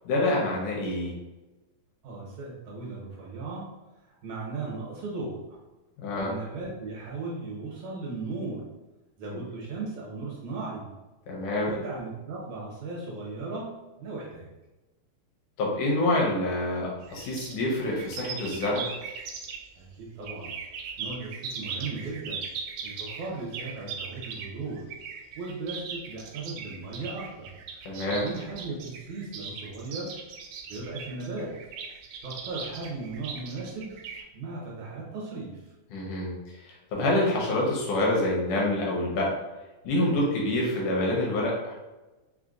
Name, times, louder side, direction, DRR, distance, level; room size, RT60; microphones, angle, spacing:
voice 1, 0.1-1.1 6.0-6.3 9.3-9.4 11.3-11.7 15.6-18.9 27.9-28.3 35.9-36.3 36.6-39.3 39.8-41.8, left 1 dB, 75° left, -3 dB, 2.3 m, -27 dB
voice 2, 2.0-3.7 4.0-5.6 6.1-8.7 9.2-10.9 11.6-14.5 19.8-20.6 21.0-22.5 22.8-24.9 25.4-27.6 28.1-30.2 30.7-31.6 32.2-34.0 34.3-35.7, right 3 dB, 70° right, -4 dB, 2.2 m, -37 dB
sound 1, 17.0-19.8 20.2-34.2, right 6 dB, 90° right, 1.6 m, -39 dB
5.7 x 2.2 x 2.5 m, 1.1 s
omnidirectional pair, 3.7 m